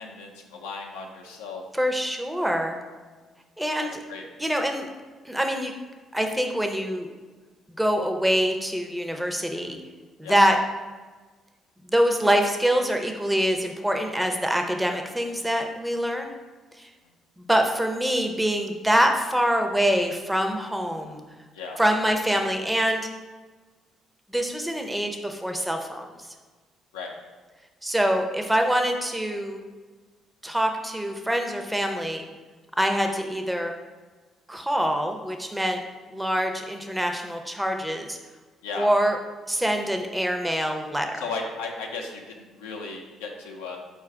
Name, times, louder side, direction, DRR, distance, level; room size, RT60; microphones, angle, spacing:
voice 1, 0.0-1.6 4.1-4.3 10.2-10.4 15.8-15.9 21.5-21.8 26.9-27.1 38.6-38.9 41.1-43.8, left 4 dB, 90° left, 0 dB, 0.5 m, -35 dB
voice 2, 1.8-2.8 3.6-3.9 4.4-4.9 5.3-5.7 6.1-7.1 7.8-9.8 10.2-10.6 11.9-16.3 16.8-16.9 17.4-21.2 21.8-23.1 24.3-26.0 27.8-29.6 30.4-32.2 32.8-33.7 34.5-35.8 36.1-38.2 38.8-39.2 39.5-41.2, equal, 10° right, 4 dB, 0.6 m, -25 dB
4.6 x 2.4 x 4.5 m, 1.3 s
hypercardioid pair, 55°, 0 cm